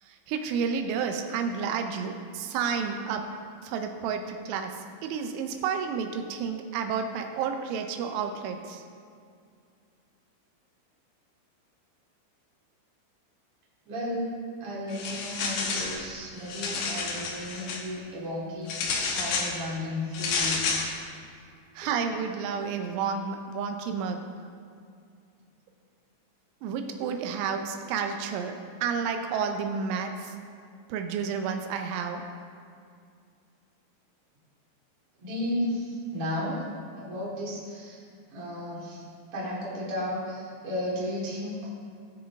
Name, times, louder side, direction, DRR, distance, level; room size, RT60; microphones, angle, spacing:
voice 1, 0.0-3.3 3.6-8.8 21.7-24.3 26.6-30.4 30.9-32.2, right 6 dB, 85° right, 5 dB, 3.1 m, -31 dB
voice 2, 13.9-14.3 14.6-20.9 35.2-36.6 37.0-38.0 38.3-39.0 39.3-41.7, left 1 dB, 35° right, -7 dB, 2.7 m, -34 dB
sound 1, 14.9-16.0 16.4-17.8 18.7-19.5 20.1-20.9, left 4 dB, 80° left, 1.9 m, -30 dB
18.0 x 6.4 x 3.5 m, 2.3 s
omnidirectional pair, 5.4 m